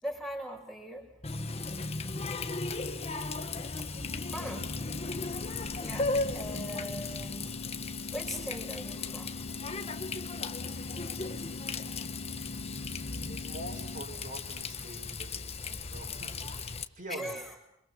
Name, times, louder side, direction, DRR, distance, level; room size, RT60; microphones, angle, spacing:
voice 1, 0.0-1.1 3.9-4.7 5.8-7.7 8.1-9.5 17.1-17.7, equal, ahead, -1 dB, 6.5 m, -41 dB
Water tap faucet, 1.2-16.8, left 3 dB, 30° left, 1.3 m, -36 dB
sound 1, 4.0-14.0, left 3 dB, 60° left, 0.9 m, -43 dB
voice 2, 4.4-4.7 13.1-17.3, right 1 dB, 40° right, -1 dB, 6.4 m, -45 dB
28.0 x 26.0 x 6.3 m, 0.81 s
head